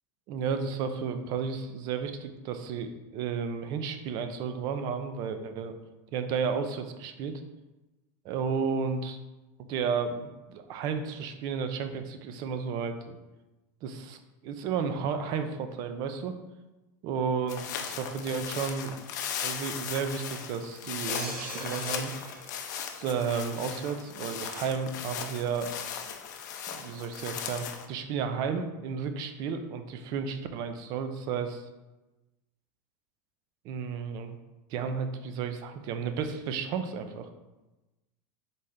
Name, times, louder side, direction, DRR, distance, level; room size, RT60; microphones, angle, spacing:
voice 1, 0.3-5.8 6.1-7.4 8.2-9.2 9.6-13.2 13.8-16.4 17.0-17.6 17.9-19.0 19.4-22.1 23.0-25.7 26.7-31.6 33.6-34.4 34.7-37.3, right 6 dB, 45° right, 8 dB, 0.4 m, -32 dB
sound 1, 17.5-27.9, left 8 dB, 80° left, 0.5 m, -37 dB
sound 2, 21.1-23.8 24.2-24.4, right 2 dB, 25° right, 1.3 m, -42 dB
4.0 x 3.2 x 3.7 m, 1.1 s
supercardioid pair, 145°, 10 cm